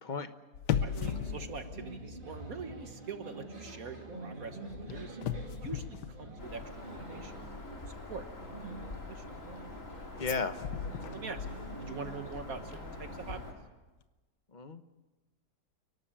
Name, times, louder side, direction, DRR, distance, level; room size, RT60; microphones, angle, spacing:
sound 1, 0.5-2.8 3.1-3.4 4.7-6.9 10.2-12.1 12.4-12.5, left 9 dB, 85° left, 1.5 m, -37 dB
sound 2, 0.7-13.4, right 2 dB, 30° right, 2.7 m, -47 dB
voice 1, 0.8-5.2 5.5-7.6 7.9-8.3 8.5-8.7 9.1-9.2 11.0-11.5 11.8-13.4, right 5 dB, 60° right, 8 dB, 1.6 m, -44 dB
Bird vocalization bird call bird song, 6.4-13.5, left 2 dB, 50° left, 3.4 m, -45 dB
voice 2, 10.2-10.6 14.5-14.8, left 4 dB, 30° left, 9 dB, 1.0 m, -34 dB
29.5 x 12.0 x 8.8 m, 1.2 s
omnidirectional pair, 1.8 m